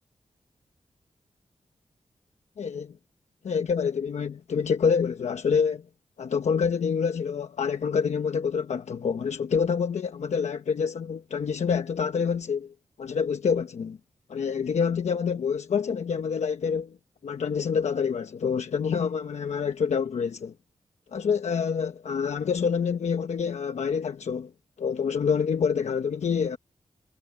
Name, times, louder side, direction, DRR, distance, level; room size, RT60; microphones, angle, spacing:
voice 1, 2.6-3.0 3.4-5.8 6.2-14.0 14.3-17.0 17.2-20.5 21.1-24.5 24.8-26.6, left 6 dB, 75° left, 1.0 m, -27 dB
wide cardioid pair, 175°, 12 cm